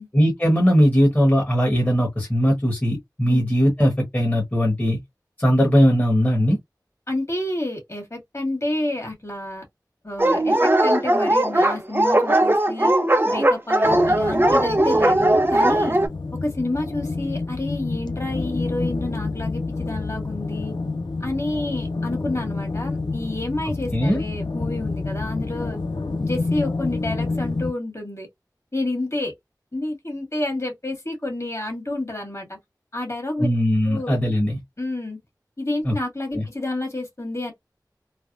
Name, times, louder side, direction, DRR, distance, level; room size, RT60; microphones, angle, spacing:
voice 1, 0.1-5.0 5.4-6.6 23.9-24.2 33.4-34.6 35.8-36.0 36.3-36.4, equal, 25° left, 1.2 m, -19 dB
voice 2, 7.1-9.6 10.0-12.9 13.3-16.0 16.4-20.7 21.2-25.8 26.2-28.3 28.7-29.3 29.7-32.6 32.9-33.5 33.9-34.1 34.8-35.2 35.6-37.5, left 2 dB, 45° left, 1.8 m, -29 dB
Dog, 10.2-16.1, right 1 dB, 30° right, 0.7 m, -18 dB
sound 1, 13.8-27.7, left 3 dB, 85° left, 0.5 m, -28 dB
3.3 x 2.1 x 2.5 m
wide cardioid pair, 50°, 7 cm